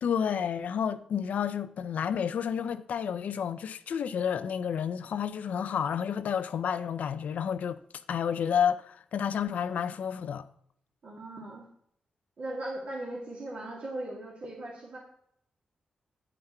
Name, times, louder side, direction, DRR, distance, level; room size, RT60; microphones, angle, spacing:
voice 1, 0.0-7.8 8.1-10.4, left 8 dB, 75° left, 0.4 m, -30 dB
voice 2, 11.0-11.7 12.4-15.0, right 1 dB, 65° right, 2.1 m, -38 dB
9.2 x 5.9 x 4.3 m
cardioid pair, 60°, 3 cm